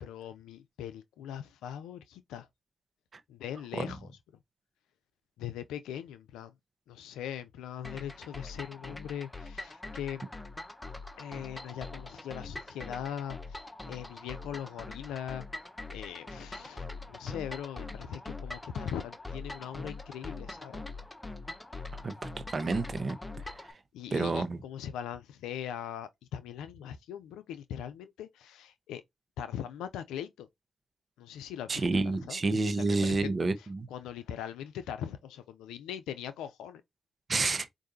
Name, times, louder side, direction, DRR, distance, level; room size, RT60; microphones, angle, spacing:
voice 1, 0.0-2.5 3.3-4.1 5.4-6.5 6.9-10.3 11.2-15.5 15.9-20.8 23.9-29.0 29.4-30.5 31.2-31.8 32.3-32.4 32.7-36.8, left 9 dB, 85° left, 0.5 m, -40 dB
sound 1, 7.8-23.7, left 2 dB, 20° left, 1.0 m, -43 dB
voice 2, 22.0-23.2 23.4-23.7 24.1-24.6 31.7-33.9 37.3-37.7, right 3 dB, 50° right, 0.8 m, -29 dB
4.7 x 2.6 x 2.7 m
supercardioid pair, 40°, 0 cm